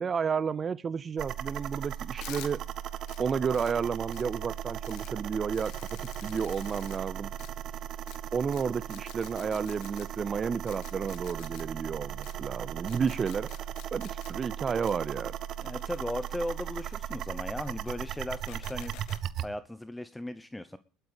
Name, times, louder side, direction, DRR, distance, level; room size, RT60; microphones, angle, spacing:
voice 1, 0.0-2.6 3.2-5.9 6.2-7.3 8.3-13.5 13.9-15.3, right 6 dB, 35° right, 18 dB, 0.6 m, -31 dB
sound 1, 1.2-19.5, right 10 dB, 50° right, 1.0 m, -37 dB
sound 2, 2.2-2.5 3.1-3.2 3.5-3.7 4.1-4.2 4.8-5.1 5.5-7.0 7.4-7.5 8.1-8.2 8.5-8.6 8.9-10.1 10.7-11.6 12.2-12.3 12.9-14.3 14.8-14.9 15.6-17.0 17.5-18.1 18.5-19.2, left 14 dB, 65° left, 1.7 m, -49 dB
voice 2, 15.6-19.0 19.4-20.8, left 1 dB, 5° left, 13 dB, 0.9 m, -37 dB
21.0 x 9.0 x 5.1 m, 0.42 s
supercardioid pair, 85°, 0 cm